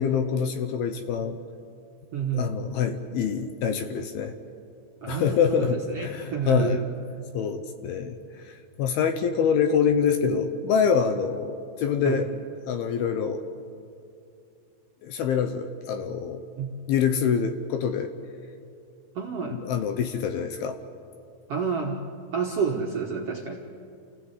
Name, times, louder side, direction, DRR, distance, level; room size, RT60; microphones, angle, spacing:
voice 1, 0.0-1.4 2.3-4.3 5.1-6.8 7.3-8.2 8.4-12.3 12.7-13.4 15.0-16.5 16.9-18.1 19.5-20.8, left 7 dB, 80° left, 8 dB, 2.8 m, -25 dB
voice 2, 2.1-2.6 5.0-6.9 12.0-12.2 16.6-16.8 19.1-19.7 21.5-23.6, right 6 dB, 65° right, 0 dB, 1.5 m, -29 dB
28.5 x 16.0 x 8.1 m, 2.6 s
omnidirectional pair, 4.5 m